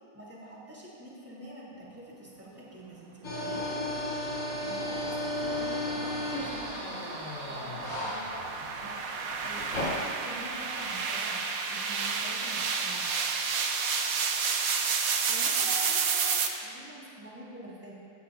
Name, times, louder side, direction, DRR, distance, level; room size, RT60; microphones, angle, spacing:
voice 1, 0.1-3.7 4.3-8.5 8.8-13.1 15.3-17.9, right 1 dB, 10° right, -6 dB, 3.2 m, -46 dB
sound 1, 3.2-11.0, left 1 dB, 60° left, 3.4 m, -35 dB
sound 2, 4.4-16.5, right 5 dB, 70° right, 1.3 m, -31 dB
17.5 x 15.5 x 2.6 m, 2.6 s
omnidirectional pair, 1.5 m